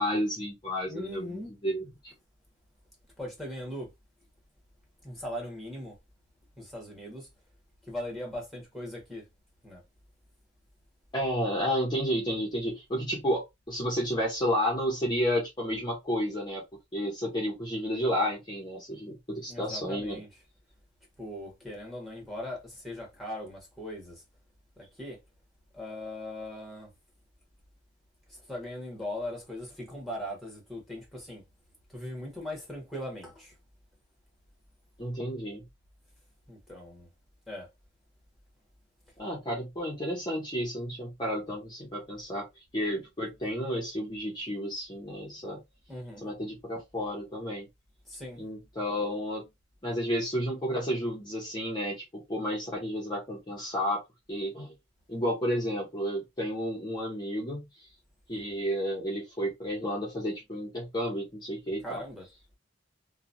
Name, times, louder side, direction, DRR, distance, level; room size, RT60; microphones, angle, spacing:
voice 1, 0.0-2.1 11.1-16.6 16.9-20.2 35.0-35.6 39.2-42.5 42.7-45.6 46.2-47.7 48.4-49.5 49.8-54.0 54.3-54.7 55.1-57.9 58.3-62.0, equal, 25° left, 0.8 m, -31 dB
voice 2, 0.9-1.5 3.2-3.9 5.0-5.9 6.6-7.3 7.8-9.2 9.6-9.8 19.5-20.3 21.2-24.2 24.8-25.2 25.7-26.9 28.3-31.4 31.9-33.5 36.5-37.1 37.5-37.7 45.9-46.2 48.1-48.4 61.8-62.2, left 1 dB, ahead, 1.3 m, -39 dB
2.9 x 2.3 x 2.5 m
head